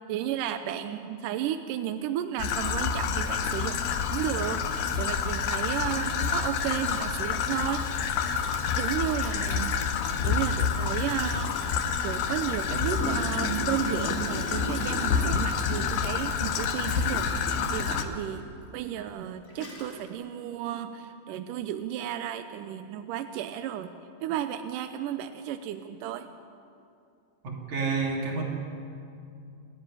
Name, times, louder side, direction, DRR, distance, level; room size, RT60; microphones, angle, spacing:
voice 1, 0.1-3.8 4.1-8.1 8.8-9.8 10.2-11.5 12.0-18.5 18.7-23.9 24.2-26.3, right 10 dB, 80° right, 8 dB, 2.0 m, -33 dB
Traffic noise roadway noise / Trickle dribble, 2.4-18.0, left 6 dB, 85° left, 3.0 m, -28 dB
Gurgling, 8.4-8.5 9.2-12.0 12.6-16.2 16.8-18.3 19.0-19.1 19.5-20.1, right 1 dB, 20° left, 3.5 m, -37 dB
voice 2, 27.4-28.4, right 4 dB, 50° right, -1 dB, 4.2 m, -29 dB
27.0 x 10.5 x 10.0 m, 2.5 s
omnidirectional pair, 4.4 m